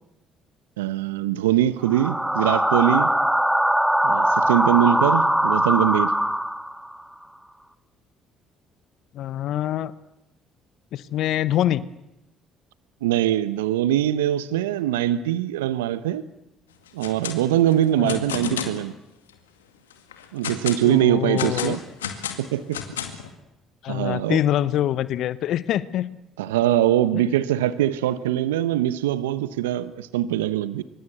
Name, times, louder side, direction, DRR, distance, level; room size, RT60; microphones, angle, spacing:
voice 1, 0.8-3.1 4.0-6.1 13.0-16.2 16.9-18.9 20.3-21.8 22.4-22.8 23.9-24.4 26.4-30.8, right 12 dB, 80° right, 15 dB, 0.9 m, -22 dB
sound 1, 1.8-6.9, equal, 5° right, 1.7 m, -21 dB
voice 2, 9.1-9.9 10.9-11.9 17.9-18.2 20.8-21.8 23.8-26.1 27.1-27.2, left 12 dB, 60° left, 17 dB, 1.0 m, -25 dB
sound 2, 16.9-17.4 17.7-18.8 19.3-19.4 19.9-20.8 21.4-23.3, left 8 dB, 85° left, 2.1 m, -31 dB
25.5 x 23.5 x 8.0 m, 0.91 s
hypercardioid pair, 55°, 0 cm